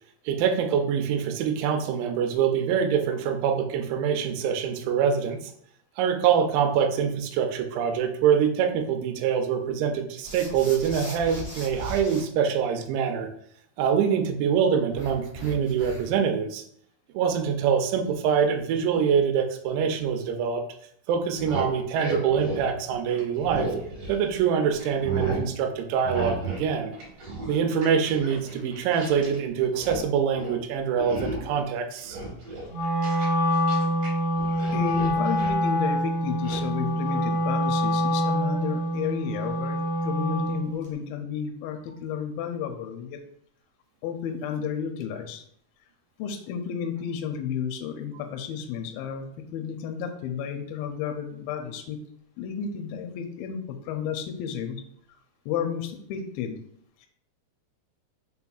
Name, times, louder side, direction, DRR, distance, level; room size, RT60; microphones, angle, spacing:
voice 1, 0.3-5.5 6.0-13.3 13.8-16.6 17.1-20.6 21.1-23.7 24.1-27.0 27.5-32.2, right 7 dB, 80° right, 5 dB, 2.0 m, -25 dB
sound 1, 10.2-12.2 14.9-16.2, right 1 dB, 35° left, 0.7 m, -39 dB
sound 2, 21.2-24.5 24.8-25.5 26.0-26.7 26.9-29.4 29.6-30.0 30.3-30.6 31.0-31.6 32.0-34.1 34.4-35.6 36.4-36.6, right 3 dB, 60° right, 1.8 m, -34 dB
Wind instrument woodwind instrument, 32.7-40.7, equal, 60° left, 1.5 m, -25 dB
voice 2, 34.7-43.2 44.0-45.4 46.2-49.3 49.5-52.0 52.4-54.8 55.5-56.6, left 7 dB, 80° left, 5 dB, 2.2 m, -32 dB
5.8 x 3.5 x 2.3 m, 0.65 s
omnidirectional pair, 4.4 m